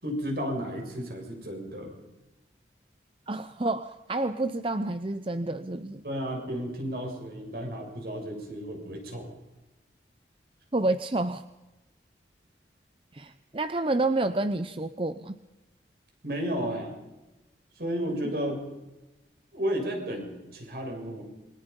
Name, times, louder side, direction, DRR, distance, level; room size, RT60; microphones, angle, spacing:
voice 1, 0.0-1.9 6.0-9.3 16.2-16.9 17.8-18.6 19.5-21.2, equal, 55° right, 2 dB, 6.9 m, -33 dB
voice 2, 3.3-6.0 10.7-11.4 13.1-15.4, right 2 dB, 30° right, 10 dB, 0.7 m, -29 dB
27.0 x 24.0 x 5.4 m, 1.0 s
head